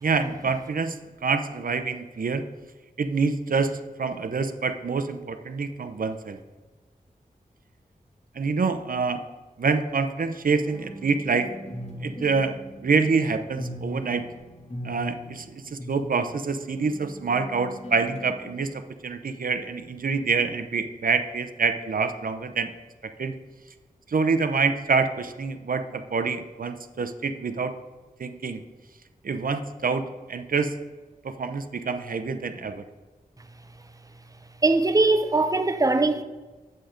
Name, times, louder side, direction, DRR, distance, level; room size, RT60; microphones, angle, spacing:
voice 1, 0.0-2.4 3.0-6.4 8.4-9.2 9.6-11.5 12.0-14.3 14.8-22.7 23.0-23.4 24.1-27.8 28.2-28.6 29.2-30.7 31.2-32.8, right 4 dB, 70° right, 0.7 m, -26 dB
sound 1, 10.6-18.6, equal, 50° left, 1.9 m, -40 dB
voice 2, 34.6-36.2, right 3 dB, 25° right, 0.6 m, -21 dB
8.0 x 7.7 x 5.0 m
wide cardioid pair, 90°, 15 cm